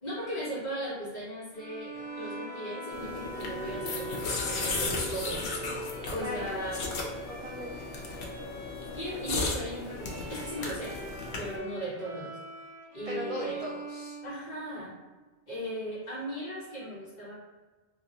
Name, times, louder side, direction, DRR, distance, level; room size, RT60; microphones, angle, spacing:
voice 1, 0.0-5.5 6.1-7.0 8.9-11.0 11.4-12.3 12.9-13.6 14.2-14.9 15.5-17.3, equal, 45° left, -8 dB, 1.3 m, -37 dB
Bowed string instrument, 1.5-15.0, right 3 dB, 85° right, 1.1 m, -43 dB
Bowed string instrument 2, 1.9-5.6, left 2 dB, 35° right, 1.4 m, -44 dB
sound 1, 2.9-11.6, left 3 dB, 75° left, 0.8 m, -35 dB
voice 2, 6.2-6.5 7.3-7.9 13.1-14.2, equal, 55° right, -3 dB, 0.4 m, -38 dB
2.9 x 2.6 x 2.8 m, 1.2 s
omnidirectional pair, 1.1 m